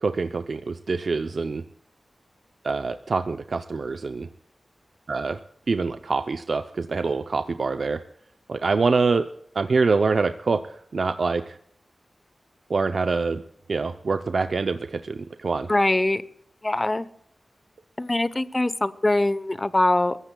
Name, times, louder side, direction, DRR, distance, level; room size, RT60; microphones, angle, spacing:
voice 1, 0.0-1.6 2.6-4.3 5.1-5.4 5.7-8.0 8.5-9.3 9.5-11.6 12.7-13.4 13.7-15.7, right 4 dB, 70° right, 9 dB, 0.6 m, -25 dB
voice 2, 15.7-16.2 16.6-17.1 18.0-20.2, left 2 dB, 30° left, 15 dB, 0.8 m, -22 dB
22.5 x 15.0 x 2.3 m, 0.69 s
cardioid pair, 55°, 0 cm